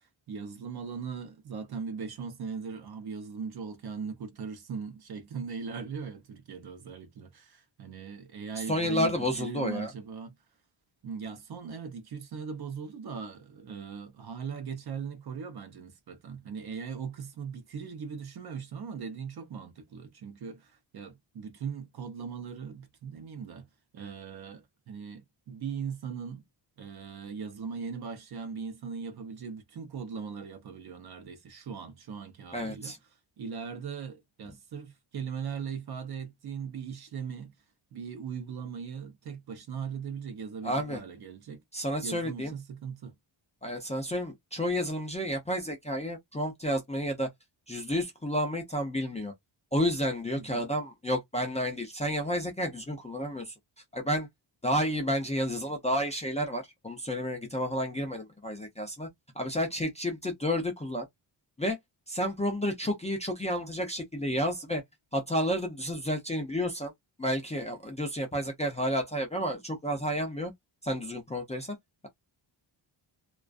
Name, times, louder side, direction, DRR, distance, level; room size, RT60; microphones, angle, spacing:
voice 1, 0.0-10.3 11.0-23.7 23.9-26.4 26.8-32.9 33.4-37.5 37.9-41.6 42.0-43.1 50.4-50.6, right 6 dB, 55° right, 0.6 m, -39 dB
voice 2, 8.6-9.9 32.5-33.0 40.6-41.0 41.7-42.5 43.6-47.3 47.7-49.3 49.7-53.5 53.9-54.3 54.6-59.1 59.4-61.1 61.6-61.8 62.1-64.8 65.1-66.9 67.2-70.5 70.8-71.8, equal, 15° left, 0.4 m, -31 dB
2.3 x 2.3 x 2.4 m
wide cardioid pair, 175°, 48 cm